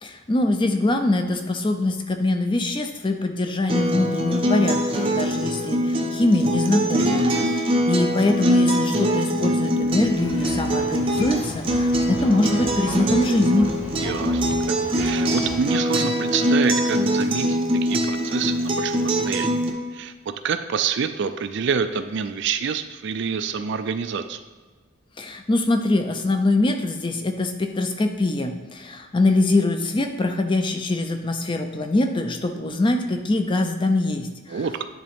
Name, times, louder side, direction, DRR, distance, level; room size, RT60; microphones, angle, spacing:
voice 1, 0.0-13.7 25.2-34.6, left 2 dB, 20° left, 6 dB, 0.4 m, -23 dB
Acoustic guitar, 3.7-19.7, equal, 25° right, 0.7 m, -23 dB
voice 2, 6.9-7.5 14.0-19.5 19.9-20.1 20.4-24.4 34.5-34.9, right 6 dB, 55° right, 10 dB, 0.3 m, -27 dB
sound 1, 9.8-15.6, left 1 dB, 60° left, 2.0 m, -36 dB
10.0 x 3.7 x 3.5 m, 1.4 s
head